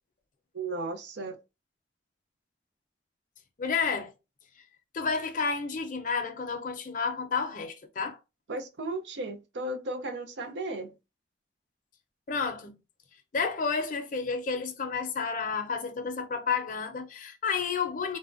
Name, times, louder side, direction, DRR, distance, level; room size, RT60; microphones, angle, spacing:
voice 1, 0.5-1.4 8.5-10.9, right 2 dB, 70° right, 0.5 m, -35 dB
voice 2, 3.6-4.1 4.9-8.2 12.3-12.8 13.3-18.2, left 5 dB, 45° left, 0.5 m, -31 dB
3.3 x 2.1 x 2.4 m
head